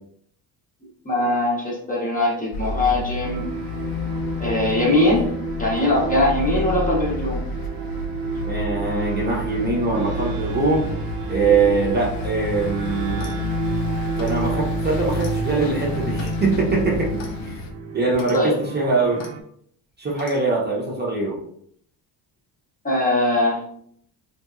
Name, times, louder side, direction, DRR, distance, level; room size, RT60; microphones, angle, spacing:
voice 1, 1.0-3.5 4.4-5.3 5.6-7.4 18.3-18.6 22.8-23.6, left 1 dB, 20° left, -3 dB, 0.7 m, -21 dB
sound 1, 2.5-17.7, equal, 55° left, 0.5 m, -31 dB
sound 2, 3.2-19.4, right 1 dB, 75° right, 0.7 m, -30 dB
voice 2, 8.5-10.8 11.3-13.3 14.2-17.6 17.9-19.2 20.0-21.4, right 3 dB, 25° right, -3 dB, 0.6 m, -22 dB
Clock, 13.1-13.5 14.1-14.4 15.2-15.4 16.2-16.4 17.2-17.4 18.1-18.4 19.2-19.3 20.2-20.4, left 4 dB, 90° left, 0.8 m, -40 dB
3.3 x 2.9 x 2.4 m, 0.66 s
cardioid pair, 130°, 44 cm